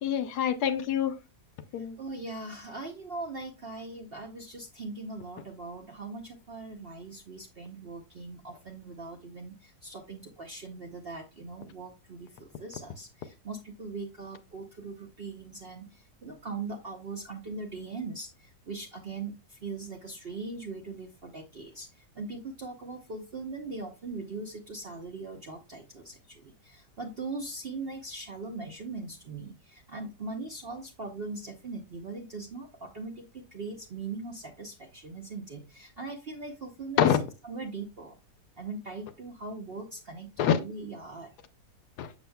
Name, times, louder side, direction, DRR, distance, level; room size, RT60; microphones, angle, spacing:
voice 1, 0.0-1.2 1.7-2.0 37.0-37.2 40.4-40.6 42.0-42.1, left 9 dB, 70° left, 1.1 m, -25 dB
voice 2, 2.0-37.0 37.5-38.2 38.6-41.3, right 3 dB, 55° right, 0.6 m, -40 dB
7.0 x 6.7 x 2.2 m
omnidirectional pair, 1.9 m